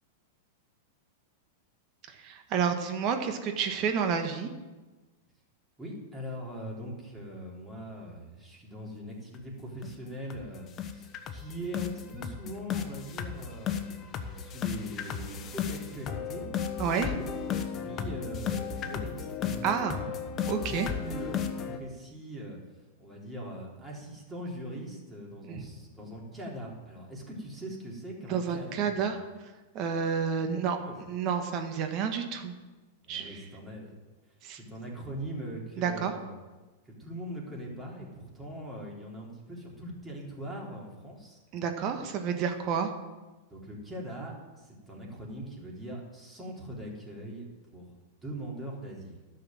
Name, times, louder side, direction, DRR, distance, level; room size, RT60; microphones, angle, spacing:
voice 1, 2.1-4.5 16.8-17.1 19.6-20.0 20.5-20.9 25.5-25.6 28.3-29.2 29.7-30.8 31.1-32.5 33.1-33.4 34.4-34.6 35.8-36.1 41.5-42.9, right 7 dB, 45° right, 6 dB, 1.6 m, -30 dB
voice 2, 5.8-16.5 17.1-17.2 17.6-19.9 20.4-29.2 30.5-31.1 33.1-34.0 34.3-36.4 36.8-41.4 41.8-41.9 43.5-47.9 48.2-49.2, equal, 15° right, -3 dB, 3.7 m, -41 dB
sound 1, 9.3-9.4 9.8-10.0 10.3-10.5 10.8-21.8, left 7 dB, 30° left, 1.1 m, -34 dB
12.0 x 6.6 x 7.6 m, 1.2 s
hypercardioid pair, 110°, 0 cm